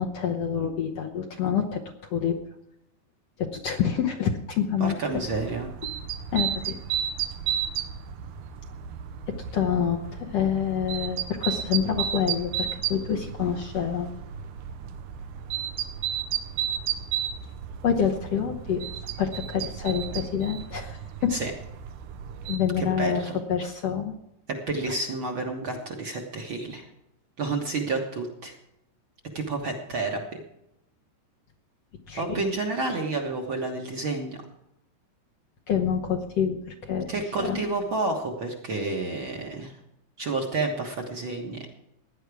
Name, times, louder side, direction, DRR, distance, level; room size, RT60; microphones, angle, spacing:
voice 1, 0.0-1.8 2.1-2.3 3.4-5.2 6.3-6.7 9.5-14.1 17.8-18.8 19.2-21.3 22.5-24.1 32.1-32.4 35.7-37.6, left 8 dB, 65° left, 2 dB, 1.8 m, -27 dB
voice 2, 4.8-5.7 21.3-21.5 22.8-23.4 24.5-26.9 27.4-28.5 29.3-30.2 32.2-34.4 37.1-39.7 40.2-41.6, right 3 dB, 50° right, 1 dB, 1.7 m, -30 dB
sound 1, 5.1-22.6, right 9 dB, 75° right, 2.2 m, -33 dB
17.0 x 10.5 x 4.8 m, 0.85 s
omnidirectional pair, 3.8 m